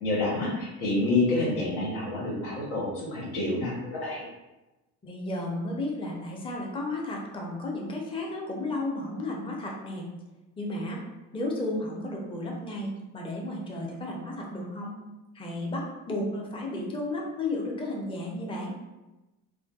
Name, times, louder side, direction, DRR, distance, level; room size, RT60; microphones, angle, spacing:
voice 1, 0.0-4.2, left 2 dB, 85° left, -5 dB, 0.9 m, -28 dB
voice 2, 5.0-10.1 10.6-11.0 11.3-15.0 15.3-18.7, left 2 dB, 15° left, -1 dB, 0.5 m, -33 dB
2.4 x 2.2 x 2.3 m, 1.1 s
hypercardioid pair, 60°, 43 cm